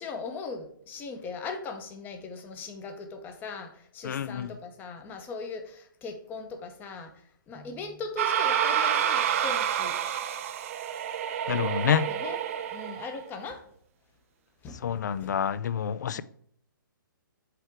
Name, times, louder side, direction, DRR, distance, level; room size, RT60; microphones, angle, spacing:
voice 1, 0.0-10.0 12.1-12.4 12.7-13.6 14.6-15.4 16.1-16.2, left 4 dB, 15° left, 0.8 m, -39 dB
voice 2, 4.0-4.5 11.5-12.1 14.8-16.2, left 8 dB, 55° left, 0.4 m, -28 dB
sound 1, 8.2-13.2, right 9 dB, 40° right, 0.6 m, -28 dB
7.7 x 3.3 x 4.8 m
figure-of-eight pair, 130°, 11 cm